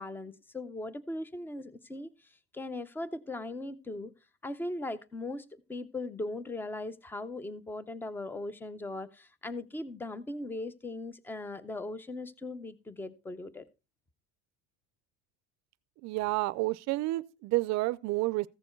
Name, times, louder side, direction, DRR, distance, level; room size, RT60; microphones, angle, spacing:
voice 1, 0.0-4.1 4.4-13.6, left 2 dB, 5° left, 0.6 m, -39 dB
voice 2, 16.0-18.5, right 20 dB, 50° right, 0.5 m, -30 dB
15.0 x 6.8 x 4.4 m
cardioid pair, 150°, 36 cm